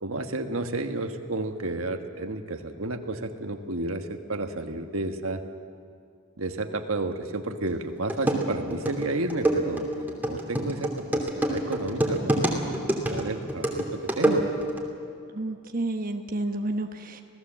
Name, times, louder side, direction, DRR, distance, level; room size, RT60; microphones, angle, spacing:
voice 1, 0.0-5.4 6.4-14.5, right 2 dB, 80° right, 6 dB, 1.5 m, -32 dB
sound 1, 7.7-7.8 8.1-14.8, right 1 dB, 10° right, 2.8 m, -26 dB
voice 2, 15.3-17.2, right 2 dB, 40° right, 4 dB, 1.1 m, -30 dB
27.0 x 18.0 x 7.5 m, 2.4 s
head